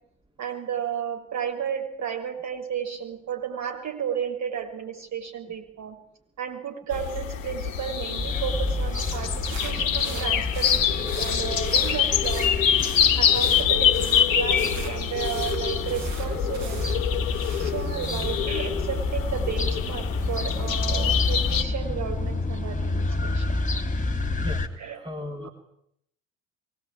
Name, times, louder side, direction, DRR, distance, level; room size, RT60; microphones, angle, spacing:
voice 1, 0.4-6.0 6.4-12.5 13.2-16.9 17.6-23.4 24.8-25.0 25.4-25.5, right 8 dB, 45° right, 6 dB, 7.0 m, -33 dB
sound 1, 6.9-21.6, left 9 dB, 75° left, 1.5 m, -25 dB
sound 2, 8.2-24.7, left 2 dB, 20° left, 3.2 m, -29 dB
sound 3, 8.9-18.4, right 3 dB, 65° right, 5.9 m, -42 dB
voice 2, 25.0-25.5, left 1 dB, 10° right, 3 dB, 3.7 m, -36 dB
24.0 x 20.0 x 9.0 m, 0.73 s
figure-of-eight pair, 65°, 39 cm